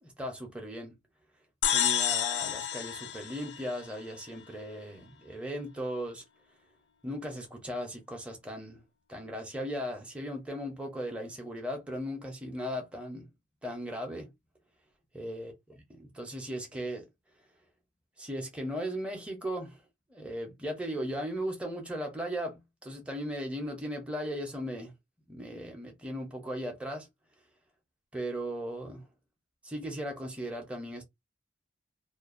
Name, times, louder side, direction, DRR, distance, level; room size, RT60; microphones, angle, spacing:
voice 1, 0.0-1.0 1.7-6.2 7.0-8.8 9.1-13.3 13.6-14.3 15.1-15.5 15.9-17.1 18.2-19.8 20.1-24.9 25.3-27.1 28.1-29.0 29.6-31.0, equal, 5° right, 0.6 m, -37 dB
sound 1, 1.6-4.2, left 10 dB, 60° left, 0.5 m, -30 dB
2.5 x 2.2 x 2.5 m
head